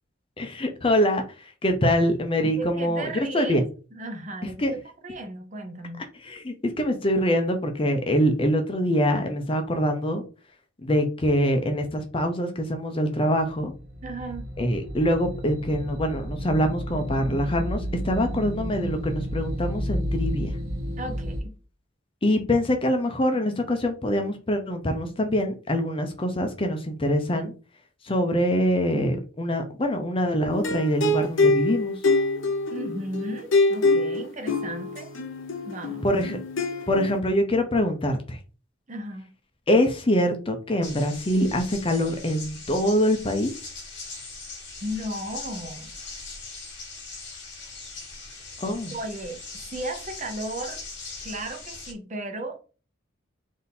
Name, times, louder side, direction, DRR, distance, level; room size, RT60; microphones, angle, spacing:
voice 1, 0.4-3.6 4.6-4.7 6.2-10.2 10.8-13.7 14.6-20.5 22.2-27.5 28.0-31.9 36.0-36.4 36.9-38.4 39.7-43.5 48.6-48.9, equal, 25° left, 0.6 m, -24 dB
voice 2, 2.4-3.6 3.9-4.6 5.0-6.0 14.0-14.5 21.0-21.5 32.7-35.1 35.6-36.1 38.9-39.3 44.8-45.9 48.9-49.4 49.7-50.8 51.2-52.6, right 1 dB, 40° right, 0.8 m, -35 dB
sound 1, 13.6-21.4, equal, 85° right, 0.9 m, -31 dB
sound 2, 30.5-37.2, left 2 dB, 80° left, 0.7 m, -25 dB
sound 3, 40.8-51.9, left 3 dB, 60° left, 1.5 m, -40 dB
3.6 x 2.8 x 4.1 m
head